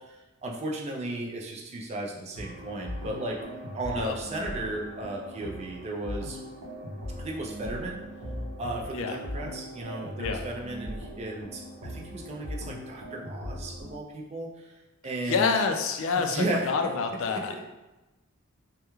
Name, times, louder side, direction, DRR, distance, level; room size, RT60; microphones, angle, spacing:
voice 1, 0.4-3.4 3.7-6.4 7.2-8.0 8.6-14.5 15.0-15.5 16.1-16.9 17.3-17.6, right 2 dB, 30° right, -1 dB, 0.3 m, -34 dB
sound 1, 2.3-13.9, equal, 85° right, 0.6 m, -39 dB
voice 2, 15.3-17.5, left 5 dB, 65° left, 5 dB, 0.3 m, -27 dB
2.3 x 2.1 x 2.9 m, 1.1 s
head